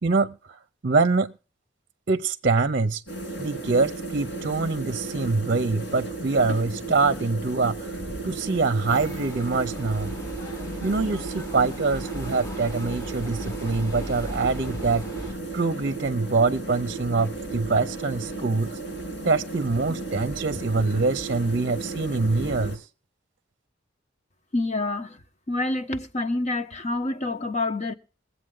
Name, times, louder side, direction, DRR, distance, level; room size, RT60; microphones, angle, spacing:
voice 1, 0.0-0.6 0.8-1.3 2.1-3.0 3.4-7.9 8.2-10.1 10.8-18.8 19.2-22.8, right 3 dB, 50° right, 0.7 m, -24 dB
sound 1, 3.1-22.8, right 2 dB, 70° left, 4.7 m, -34 dB
sound 2, 8.9-15.3, equal, 20° left, 1.1 m, -38 dB
voice 2, 24.5-25.2 25.5-27.9, left 2 dB, 40° left, 1.2 m, -27 dB
21.5 x 8.1 x 3.8 m
head